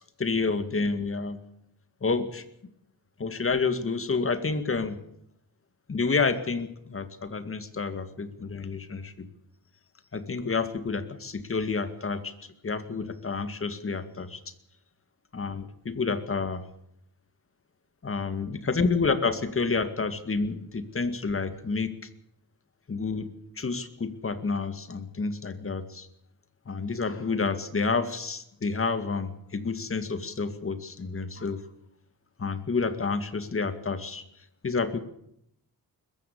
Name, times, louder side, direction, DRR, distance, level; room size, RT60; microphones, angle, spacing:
voice 1, 0.2-1.4 2.0-2.4 3.2-5.0 5.9-9.3 10.1-12.3 12.6-14.4 15.3-16.6 18.0-22.0 22.9-23.3 23.6-26.1 26.7-31.6 32.4-34.2 34.6-35.0, left 4 dB, 35° left, 11 dB, 2.1 m, -29 dB
21.0 x 14.5 x 8.5 m, 0.76 s
cardioid pair, 95°, 38 cm